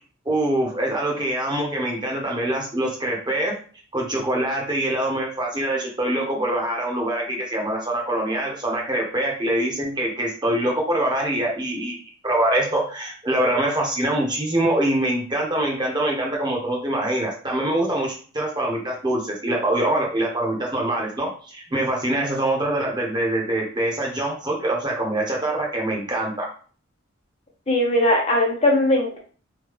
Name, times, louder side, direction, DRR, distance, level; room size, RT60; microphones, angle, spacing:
voice 1, 0.2-3.5 3.9-12.0 12.2-26.5, right 1 dB, 20° right, -1 dB, 0.9 m, -24 dB
voice 2, 27.7-29.2, left 1 dB, 30° left, -1 dB, 0.7 m, -19 dB
3.2 x 2.3 x 3.4 m, 0.41 s
head